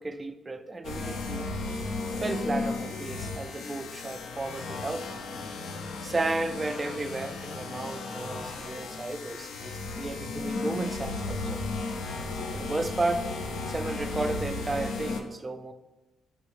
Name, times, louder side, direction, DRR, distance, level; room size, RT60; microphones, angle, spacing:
voice 1, 0.0-1.5 2.2-5.2 6.0-11.6 12.5-13.3 13.7-15.7, right 2 dB, 25° right, 9 dB, 0.3 m, -33 dB
sound 1, 0.8-15.2, left 3 dB, 70° left, 0.4 m, -35 dB
5.3 x 3.1 x 3.1 m, 1.1 s
cardioid pair, 90°, 0 cm